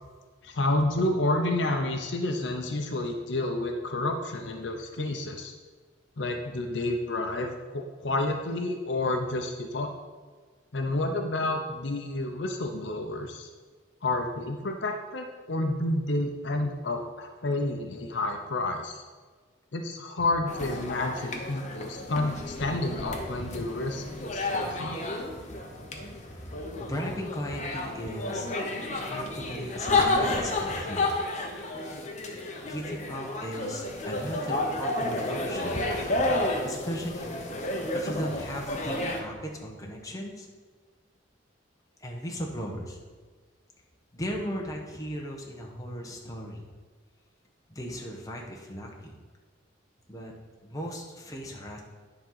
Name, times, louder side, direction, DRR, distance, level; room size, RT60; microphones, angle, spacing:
voice 1, 0.4-5.5 6.2-9.9 10.7-13.5 14.0-18.9 19.7-25.0, left 2 dB, 65° left, 4 dB, 0.7 m, -30 dB
sound 1, 20.5-39.2, left 2 dB, 40° left, 1.0 m, -31 dB
voice 2, 26.0-28.5 29.0-31.1 32.7-35.8 36.6-37.4 37.9-40.5 42.0-43.0 44.1-46.7 47.7-49.2 50.1-50.3 50.6-51.8, equal, 20° left, -1 dB, 1.1 m, -37 dB
10.0 x 3.8 x 5.7 m, 1.5 s
head